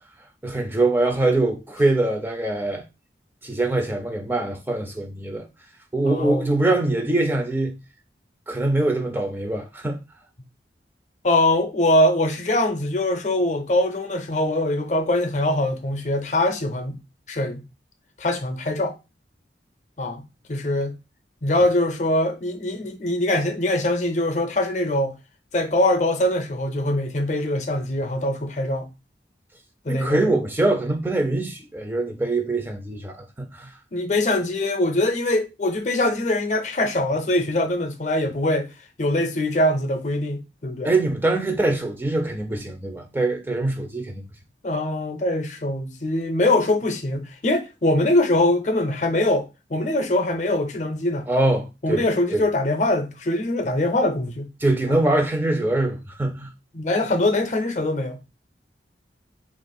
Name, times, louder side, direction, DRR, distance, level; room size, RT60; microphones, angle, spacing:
voice 1, 0.4-2.8 3.4-5.5 5.9-7.8 8.5-10.0 29.9-33.7 40.8-44.2 51.3-52.1 52.3-52.4 54.6-56.5, right 2 dB, 10° right, 0.4 m, -23 dB
voice 2, 6.0-6.6 11.2-17.0 17.3-17.6 18.2-18.9 20.0-20.2 20.5-20.9 21.4-25.1 25.5-28.9 29.8-30.4 33.9-38.7 39.0-40.9 44.6-51.3 51.8-54.5 54.9-55.0 56.7-58.2, left 1 dB, 40° left, 0.6 m, -23 dB
2.8 x 2.5 x 4.1 m
head